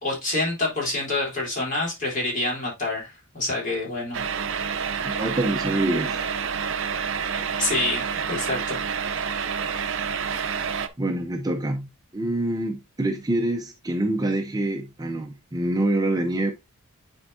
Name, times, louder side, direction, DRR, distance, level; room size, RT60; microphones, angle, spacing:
voice 1, 0.0-4.2 7.6-8.8, left 2 dB, 40° left, 3.7 m, -27 dB
sound 1, 4.1-10.9, right 6 dB, 60° right, 0.7 m, -28 dB
voice 2, 5.0-6.3 11.0-16.5, right 1 dB, 20° right, 0.7 m, -26 dB
9.5 x 4.5 x 2.7 m
head